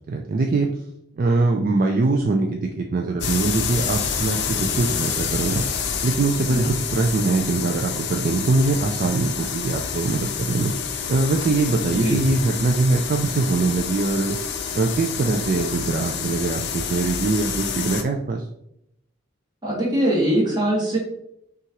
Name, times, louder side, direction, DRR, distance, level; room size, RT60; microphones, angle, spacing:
voice 1, 0.1-0.7 1.2-5.6 6.0-10.7 11.1-14.4 14.7-18.5, right 3 dB, 40° right, 2 dB, 0.3 m, -22 dB
sound 1, 3.2-18.0, left 7 dB, 50° left, 0.4 m, -28 dB
voice 2, 19.6-21.0, right 1 dB, 20° right, -5 dB, 1.4 m, -21 dB
5.7 x 2.4 x 3.0 m, 0.77 s
head